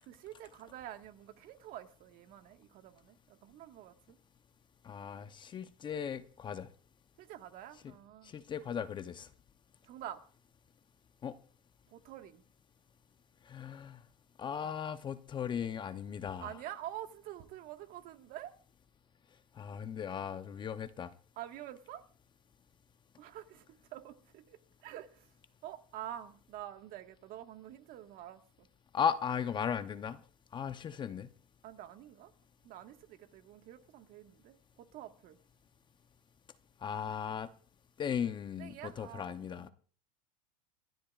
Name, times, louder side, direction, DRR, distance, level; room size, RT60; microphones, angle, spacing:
voice 1, 0.0-4.2 7.2-8.3 9.8-10.2 11.9-12.4 14.6-14.7 16.4-18.6 21.3-22.0 23.2-25.3 25.6-28.7 31.6-32.3 32.6-35.4 38.6-39.7, right 12 dB, 50° right, 1.6 m, -47 dB
voice 2, 4.8-6.7 7.8-7.9 8.2-9.3 11.2-11.4 13.5-14.0 14.4-16.5 19.6-21.1 28.9-30.2 30.5-31.3 36.8-37.5 38.0-39.7, left 8 dB, 25° left, 0.8 m, -37 dB
28.5 x 12.0 x 2.4 m
supercardioid pair, 125°, 19 cm